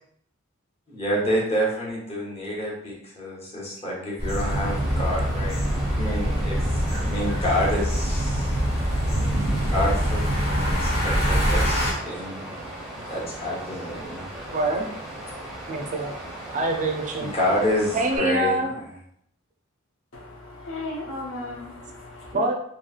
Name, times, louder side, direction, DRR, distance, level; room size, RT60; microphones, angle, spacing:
voice 1, 0.9-8.5 9.7-12.6 12.9-14.3 17.2-18.9, left 1 dB, 30° left, -4 dB, 0.9 m, -28 dB
sound 1, 4.2-11.9, equal, 50° left, 1.3 m, -24 dB
Water, 4.4-18.2, right 1 dB, 5° right, 0.7 m, -38 dB
voice 2, 14.5-14.9 15.7-16.1 16.5-17.3 17.9-18.7 22.3-22.5, right 2 dB, 35° right, 2 dB, 0.4 m, -25 dB
voice 3, 20.1-22.3, left 2 dB, 70° left, -2 dB, 0.7 m, -36 dB
2.9 x 2.7 x 2.3 m, 0.69 s
head